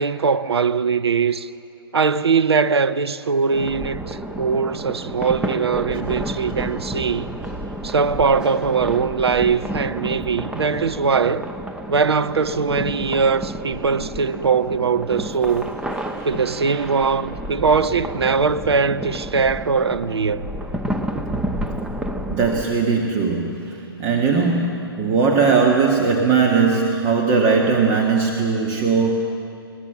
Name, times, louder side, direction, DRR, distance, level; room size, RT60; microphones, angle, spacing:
voice 1, 0.0-1.5 1.9-7.3 7.8-11.5 11.9-15.7 16.2-20.5, right 5 dB, 90° right, 0.6 m, -21 dB
sound 1, 3.5-22.6, right 1 dB, 5° right, 0.9 m, -30 dB
voice 2, 22.3-29.3, right 5 dB, 30° right, 1.7 m, -19 dB
21.0 x 18.5 x 6.9 m
hypercardioid pair, 125°, 13 cm